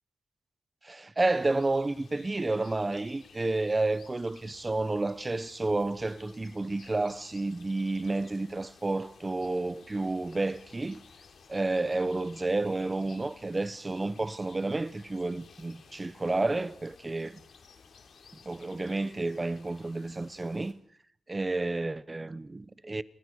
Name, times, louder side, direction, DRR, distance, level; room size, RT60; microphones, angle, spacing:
voice 1, 0.8-11.0 11.5-17.4 18.4-20.7 21.3-23.0, right 2 dB, 25° right, 1.0 m, -30 dB
sound 1, 1.2-20.7, left 5 dB, 80° left, 3.6 m, -56 dB
29.0 x 23.0 x 4.9 m
wide cardioid pair, 110°, 0 cm